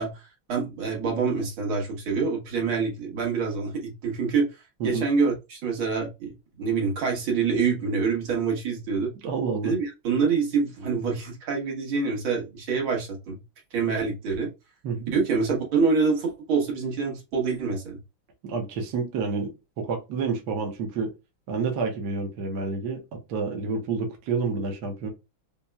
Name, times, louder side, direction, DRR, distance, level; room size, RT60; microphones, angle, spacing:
voice 1, 0.0-4.5 4.8-9.1 9.6-13.4 13.7-14.5 15.1-18.0, right 5 dB, 80° right, 2.1 m, -26 dB
voice 2, 9.2-9.7 14.8-15.1 18.4-21.1 21.5-25.1, right 4 dB, 60° right, 1.2 m, -29 dB
5.5 x 2.1 x 2.2 m
omnidirectional pair, 2.2 m